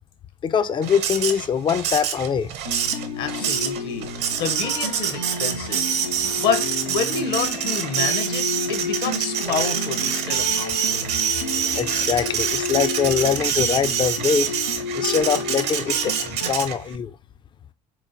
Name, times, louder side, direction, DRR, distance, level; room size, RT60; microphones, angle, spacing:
voice 1, 0.4-2.5 11.8-14.5 14.9-17.1, left 7 dB, 25° left, 0.3 m, -23 dB
Printer, 0.8-16.9, right 8 dB, 55° right, 0.7 m, -26 dB
sound 1, 2.6-16.5, left 4 dB, 90° left, 0.5 m, -31 dB
voice 2, 3.2-6.0 6.4-11.1, left 6 dB, 55° left, 0.7 m, -28 dB
3.8 x 3.1 x 2.5 m
figure-of-eight pair, 55°, 20 cm